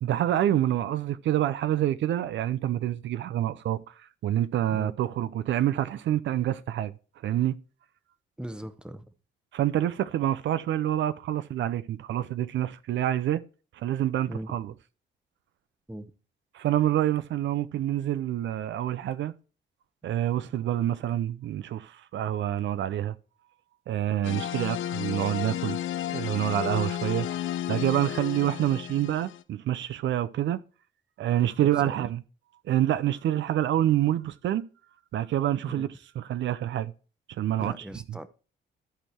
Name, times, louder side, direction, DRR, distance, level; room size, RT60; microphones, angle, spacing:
voice 1, 0.0-3.9 4.2-6.9 7.2-7.5 9.5-13.4 13.7-14.7 16.5-19.3 20.0-23.2 23.9-25.8 26.1-27.3 27.7-30.6 31.2-32.2 32.7-34.6 35.1-35.9 36.2-36.9 37.4-37.7 38.1-38.2, right 12 dB, 70° right, 0.6 m, -27 dB
voice 2, 8.4-9.1 14.3-14.5 15.9-16.1 31.6-32.1 35.8-35.9 37.6-38.3, right 1 dB, 5° right, 0.8 m, -39 dB
sound 1, 24.2-29.4, left 11 dB, 80° left, 0.7 m, -32 dB
13.5 x 4.6 x 4.4 m
cardioid pair, 90°, 20 cm